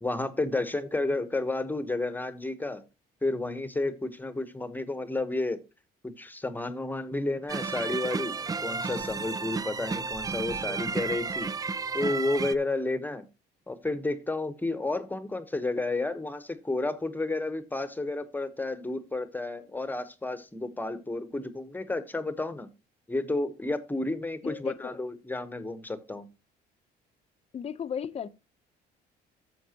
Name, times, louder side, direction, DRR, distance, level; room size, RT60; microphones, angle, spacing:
voice 1, 0.0-2.8 3.2-5.6 6.0-11.5 11.9-13.3 13.7-22.7 23.1-26.3, left 2 dB, 10° left, 1.1 m, -31 dB
sound 1, 7.5-12.5, right 4 dB, 20° right, 0.4 m, -32 dB
voice 2, 24.4-25.0 27.5-28.3, left 7 dB, 35° left, 0.8 m, -35 dB
12.5 x 7.3 x 2.9 m
cardioid pair, 110°, 17 cm